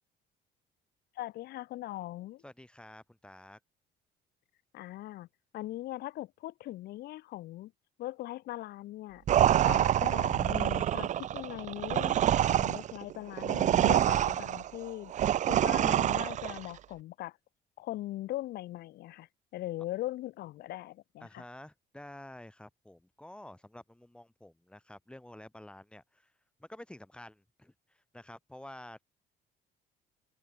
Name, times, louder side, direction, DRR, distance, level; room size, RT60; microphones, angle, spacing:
voice 1, 1.2-2.4 4.7-5.3 5.5-7.7 8.0-9.2 9.6-15.1 15.5-17.4 17.8-21.4, left 15 dB, 70° left, 1.0 m, -40 dB
voice 2, 2.4-3.6 21.2-26.3 26.6-27.7 28.1-29.0, left 1 dB, 5° left, 5.5 m, -50 dB
sound 1, 9.3-16.7, right 11 dB, 45° right, 0.5 m, -26 dB
cardioid pair, 110°, 17 cm